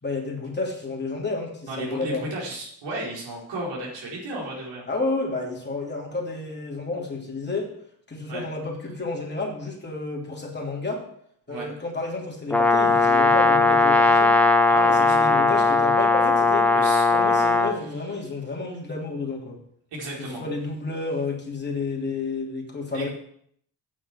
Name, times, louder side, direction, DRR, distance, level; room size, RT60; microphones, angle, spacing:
voice 1, 0.0-2.3 4.9-7.7 8.1-11.0 11.5-14.3 14.9-16.7 17.1-19.6 20.2-23.1, left 3 dB, 25° left, -1 dB, 3.2 m, -31 dB
voice 2, 1.7-4.8 8.3-8.4 11.5-11.7 14.7-15.4 16.7-17.1 19.9-20.4 22.9-23.1, right 2 dB, 85° right, -3 dB, 4.7 m, -34 dB
Brass instrument, 12.5-17.8, left 3 dB, 5° left, 1.3 m, -18 dB
9.0 x 7.2 x 7.5 m, 0.67 s
cardioid pair, 95°, 42 cm